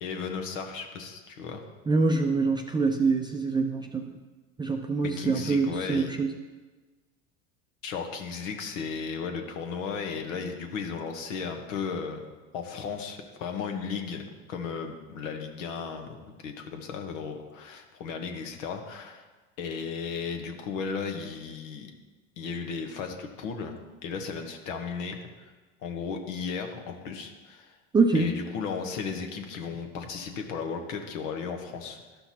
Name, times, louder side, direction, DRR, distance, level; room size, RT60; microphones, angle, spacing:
voice 1, 0.0-1.6 5.2-6.1 7.8-12.2 12.5-19.2 19.6-21.9 22.4-23.8 24.0-25.5 25.8-27.7 28.1-32.0, left 5 dB, 75° left, 4 dB, 1.1 m, -35 dB
voice 2, 1.9-4.2 4.6-6.3 27.9-28.4, right 3 dB, 10° right, 3 dB, 0.4 m, -25 dB
12.0 x 5.7 x 2.8 m, 1.3 s
hypercardioid pair, 90°, 39 cm